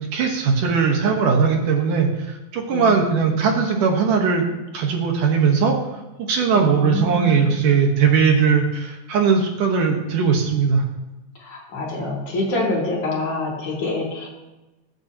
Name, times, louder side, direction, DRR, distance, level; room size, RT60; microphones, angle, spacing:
voice 1, 0.0-4.4 4.7-5.7 6.3-10.8, right 5 dB, 65° right, 2 dB, 2.6 m, -19 dB
voice 2, 2.7-3.5 6.5-7.6 11.4-14.3, left 2 dB, 55° left, -3 dB, 4.5 m, -26 dB
22.5 x 9.3 x 2.9 m, 1.1 s
omnidirectional pair, 4.4 m